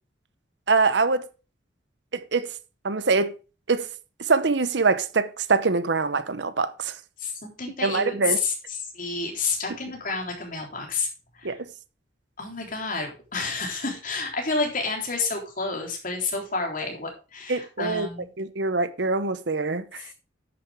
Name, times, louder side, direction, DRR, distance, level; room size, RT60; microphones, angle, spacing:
voice 1, 0.7-1.3 2.1-2.5 2.8-3.3 3.7-3.9 4.2-6.9 7.8-8.4 11.4-11.7 17.5-18.1 18.4-20.0, right 4 dB, 65° right, 0.8 m, -24 dB
voice 2, 7.2-11.1 11.3-11.6 12.4-18.3 20.0-20.1, left 4 dB, 45° left, 3.6 m, -30 dB
10.5 x 8.8 x 3.5 m
head